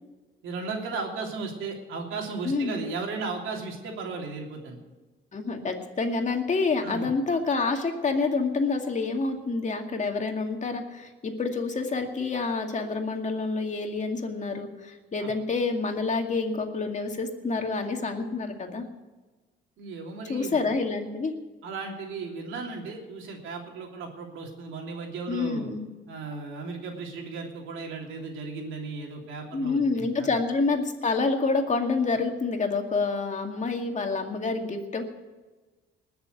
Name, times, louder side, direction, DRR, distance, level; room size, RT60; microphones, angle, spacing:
voice 1, 0.4-4.8 6.8-7.1 15.2-15.3 19.8-20.7 21.6-25.7 26.1-30.3, right 4 dB, 85° right, 1 dB, 3.1 m, -36 dB
voice 2, 2.4-2.9 5.3-18.8 20.3-21.3 25.3-25.8 29.5-35.0, left 4 dB, 40° left, 4 dB, 2.2 m, -28 dB
20.0 x 6.9 x 8.1 m, 1.2 s
cardioid pair, 90°, 20 cm